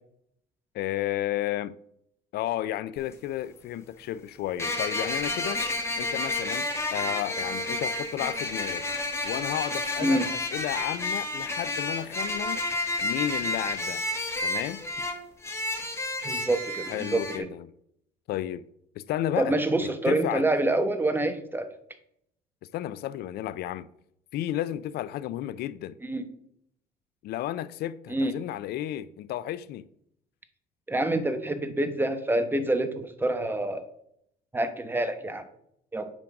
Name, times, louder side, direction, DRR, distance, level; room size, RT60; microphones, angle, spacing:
voice 1, 0.7-1.8 2.3-5.6 6.0-8.9 9.2-10.2 10.5-12.6 13.0-14.0 14.4-15.1 16.9-17.7 18.3-18.6 19.0-19.5 19.8-20.5 22.7-23.9 24.3-25.9 27.2-29.9, left 13 dB, 70° left, 0.4 m, -32 dB
sound 1, 3.0-3.1 4.6-17.4, left 2 dB, 15° left, 1.3 m, -31 dB
voice 2, 16.2-17.5 19.4-21.7 26.0-26.3 28.1-28.3 30.9-33.8 34.5-35.4 35.9-36.1, right 1 dB, 10° right, 1.0 m, -27 dB
8.8 x 3.8 x 5.8 m
cardioid pair, 110°, 17 cm